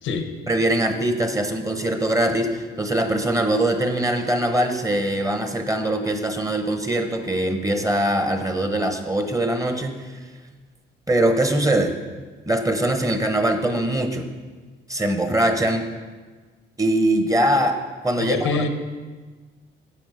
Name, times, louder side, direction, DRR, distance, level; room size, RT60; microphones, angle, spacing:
voice 1, 0.5-10.1 11.1-11.9 12.5-14.3 14.9-15.9 16.8-17.8 18.0-18.6, right 1 dB, 15° right, 7 dB, 1.1 m, -22 dB
voice 2, 18.2-18.7, left 5 dB, 85° left, 7 dB, 1.0 m, -24 dB
8.5 x 7.2 x 5.7 m, 1.4 s
cardioid pair, 90°, 20 cm